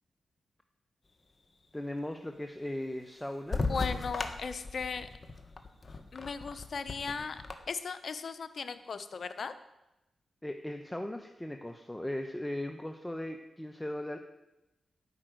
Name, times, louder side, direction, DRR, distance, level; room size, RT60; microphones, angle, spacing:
voice 1, 1.7-3.6 10.4-14.2, left 1 dB, 10° left, 5 dB, 1.0 m, -38 dB
sound 1, 3.5-7.5, left 3 dB, 40° left, 1.6 m, -36 dB
voice 2, 3.7-5.1 6.1-9.5, left 5 dB, 65° left, 11 dB, 0.9 m, -37 dB
12.0 x 5.9 x 9.3 m, 0.96 s
cardioid pair, 55°, 0 cm